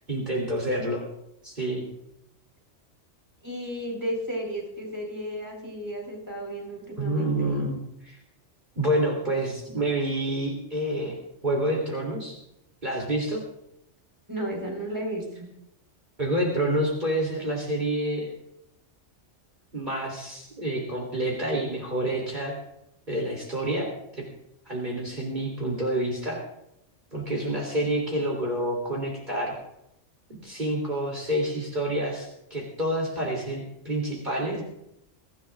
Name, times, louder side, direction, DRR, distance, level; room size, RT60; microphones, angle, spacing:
voice 1, 0.1-1.0 1.4-1.8 7.0-7.8 8.0-8.2 8.8-11.2 11.4-12.4 12.8-13.4 16.2-18.3 19.7-22.6 23.1-24.2 24.7-26.4 27.1-29.6 30.3-34.6, right 1 dB, 40° right, -2 dB, 3.3 m, -28 dB
voice 2, 3.4-7.5 14.3-15.5, equal, 15° right, 0 dB, 4.6 m, -33 dB
23.5 x 15.0 x 2.5 m, 0.80 s
omnidirectional pair, 1.2 m